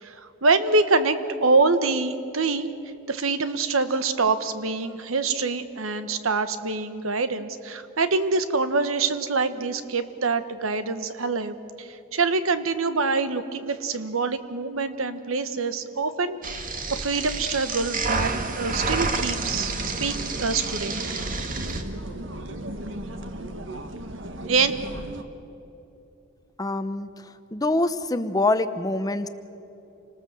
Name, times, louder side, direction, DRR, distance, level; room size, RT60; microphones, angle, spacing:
voice 1, 0.0-2.7 3.1-16.4 16.9-18.3 18.6-21.0 24.5-24.7, right 3 dB, 85° right, 11 dB, 1.3 m, -25 dB
sound 1, 16.4-21.8, right 3 dB, 40° right, 1.7 m, -29 dB
sound 2, 18.2-25.2, right 1 dB, 65° right, 1.5 m, -36 dB
voice 2, 26.6-27.1 27.5-29.3, left 2 dB, 20° left, 11 dB, 0.8 m, -24 dB
28.0 x 19.5 x 7.6 m, 2.8 s
head